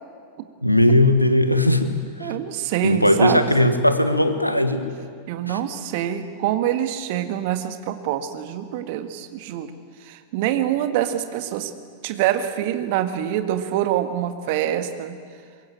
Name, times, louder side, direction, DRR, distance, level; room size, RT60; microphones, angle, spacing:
voice 1, 0.6-1.9 2.2-2.3 2.8-4.9 5.5-5.6, left 1 dB, 90° left, 9 dB, 1.5 m, -18 dB
voice 2, 2.2-3.5 5.3-9.7 10.0-11.7 12.0-15.2, right 11 dB, 50° right, 9 dB, 1.7 m, -25 dB
23.5 x 21.5 x 8.9 m, 2.1 s
figure-of-eight pair, 90°, 0 cm